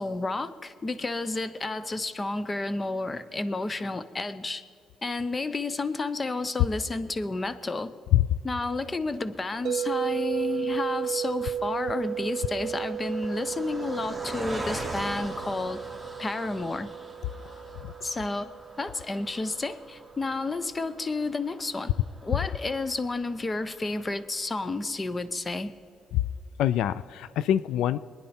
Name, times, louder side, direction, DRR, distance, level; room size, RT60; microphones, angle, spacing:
voice 1, 0.0-4.6 5.0-7.9 8.4-15.8 16.2-16.9 18.0-21.9 22.2-25.7, left 3 dB, 25° left, 13 dB, 0.8 m, -31 dB
Car passing by, 9.2-24.7 25.2-25.3 25.5-25.7, right 2 dB, ahead, 2.2 m, -43 dB
sound 1, 9.6-19.7, right 9 dB, 70° right, 0.3 m, -34 dB
voice 2, 26.6-28.0, left 12 dB, 90° left, 15 dB, 0.3 m, -24 dB
22.5 x 10.0 x 4.3 m, 2.3 s
cardioid pair, 90°, 0 cm